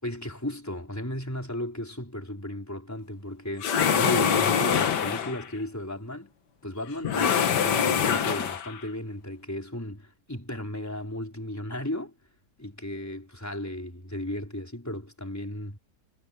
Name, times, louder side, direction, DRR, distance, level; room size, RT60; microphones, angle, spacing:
voice 1, 0.0-6.3 6.6-12.1 12.6-15.8, left 1 dB, 10° left, 4.5 m, -35 dB
sound 1, 3.6-5.5 7.0-8.8, left 7 dB, 75° left, 1.9 m, -24 dB
omnidirectional pair, 1.9 m